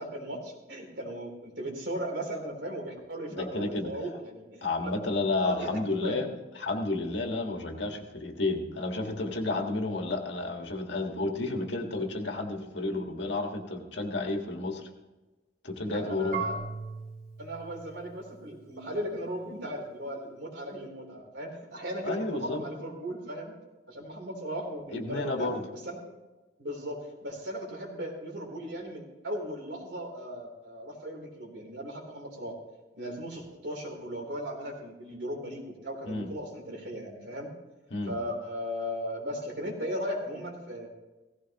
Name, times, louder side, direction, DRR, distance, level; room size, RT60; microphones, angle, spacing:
voice 1, 0.0-4.9 5.4-6.3 11.4-11.6 15.8-16.6 17.4-23.6 23.9-26.0 26.6-32.6 32.9-37.5 38.1-40.9, equal, 75° right, 0 dB, 3.3 m, -37 dB
voice 2, 3.3-3.9 4.6-6.3 6.6-14.9 15.6-16.4 22.0-22.6 24.9-25.6 36.0-36.3 37.9-38.1, left 2 dB, 75° left, 3 dB, 1.6 m, -31 dB
Marimba xylophone / Wood, 16.3-19.2, right 4 dB, 55° right, 2.8 m, -39 dB
17.0 x 15.5 x 2.9 m, 1.1 s
head